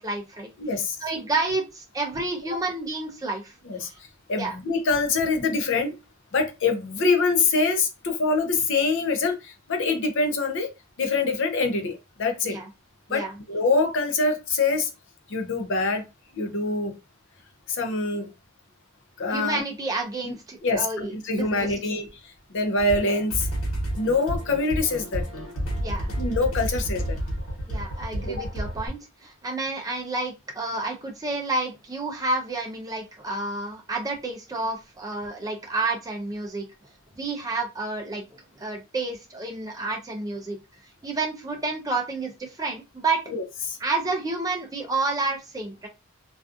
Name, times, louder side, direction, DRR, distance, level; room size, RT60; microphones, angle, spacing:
voice 1, 0.0-0.5 1.0-3.5 3.8-4.0 4.4-4.6 12.4-12.7 13.1-13.3 19.3-21.7 25.8-26.1 27.7-36.6 37.2-40.6 41.0-43.2 43.8-45.9, right 3 dB, 15° right, 0.4 m, -30 dB
voice 2, 0.6-1.0 2.5-2.6 3.7-3.9 4.3-5.9 6.3-10.7 11.0-12.6 13.1-14.9 15.3-16.0 16.3-16.9 17.7-18.3 19.2-19.6 20.6-23.5 24.0-25.3 26.2-27.2 28.3-28.5 43.3-43.8, left 3 dB, 55° left, 0.5 m, -25 dB
sound 1, 22.8-28.9, equal, 75° left, 1.1 m, -30 dB
2.4 x 2.3 x 2.5 m
head